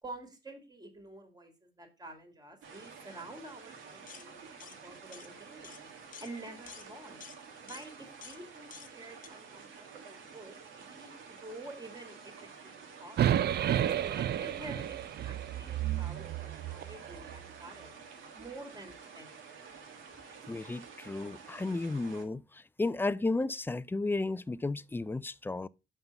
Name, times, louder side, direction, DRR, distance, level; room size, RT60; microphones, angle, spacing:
voice 1, 0.0-5.9 6.2-7.2 7.6-12.3 12.6-13.3 13.8-18.0 18.4-19.5, right 2 dB, 20° right, 2.1 m, -49 dB
sound 1, 2.6-22.2, right 5 dB, 80° right, 1.6 m, -51 dB
sound 2, 4.1-4.3 4.6-4.8 5.1-5.3 5.6-5.8 6.1-6.3 6.7-6.9 7.2-7.4 7.7-7.9 8.2-8.4 8.7-8.9 9.2-9.3, left 7 dB, 45° left, 0.8 m, -49 dB
sound 3, 13.2-17.4, right 11 dB, 55° right, 0.5 m, -31 dB
voice 2, 20.5-22.4 22.8-25.7, left 3 dB, 10° left, 0.3 m, -33 dB
5.8 x 5.5 x 5.1 m
cardioid pair, 90°, 20 cm